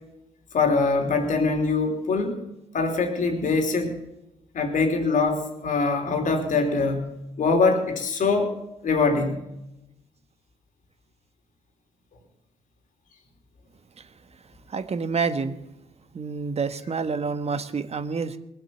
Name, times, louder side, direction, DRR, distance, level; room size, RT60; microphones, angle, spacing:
voice 1, 0.5-2.5 2.7-4.0 4.5-8.6 8.8-9.5, left 4 dB, 60° left, 4 dB, 3.1 m, -23 dB
voice 2, 14.7-15.6 16.1-18.4, right 5 dB, 45° right, 10 dB, 1.4 m, -28 dB
19.5 x 7.7 x 7.3 m, 0.88 s
hypercardioid pair, 45°, 15 cm